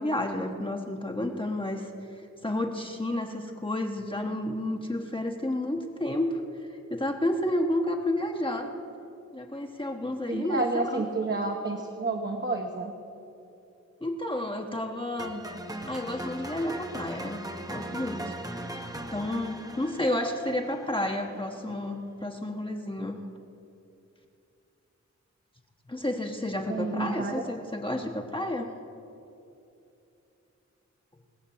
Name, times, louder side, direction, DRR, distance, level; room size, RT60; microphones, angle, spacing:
voice 1, 0.0-1.9 2.4-6.4 6.7-8.7 9.3-11.0 14.0-15.4 15.9-17.4 17.7-18.4 19.1-23.2 25.9-28.7, left 1 dB, 15° left, 2 dB, 1.0 m, -31 dB
voice 2, 10.3-12.9 26.7-27.4, right 3 dB, 40° right, 2 dB, 1.0 m, -30 dB
sound 1, 15.2-21.3, right 1 dB, 15° right, 0.9 m, -39 dB
19.0 x 7.2 x 7.1 m, 2.8 s
wide cardioid pair, 95°, 29 cm